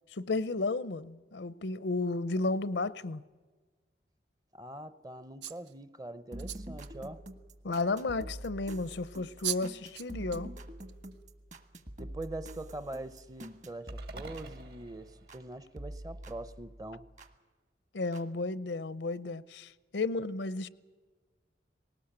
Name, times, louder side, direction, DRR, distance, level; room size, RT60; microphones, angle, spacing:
voice 1, 0.2-3.2 7.6-10.5 17.9-20.7, left 3 dB, 80° left, 0.7 m, -33 dB
voice 2, 4.5-7.2 12.0-17.1, right 2 dB, 20° right, 0.6 m, -43 dB
sound 1, 5.4-5.7 6.4-6.9 7.8-7.9 9.1-9.2 9.4-9.7 10.0-10.4 10.9-11.1, right 12 dB, 80° right, 0.8 m, -37 dB
sound 2, 6.3-15.5 15.8-17.3 18.1-18.2, right 1 dB, 40° right, 1.3 m, -46 dB
sound 3, 13.9-16.2, right 2 dB, 65° right, 2.7 m, -51 dB
20.0 x 18.5 x 8.8 m
head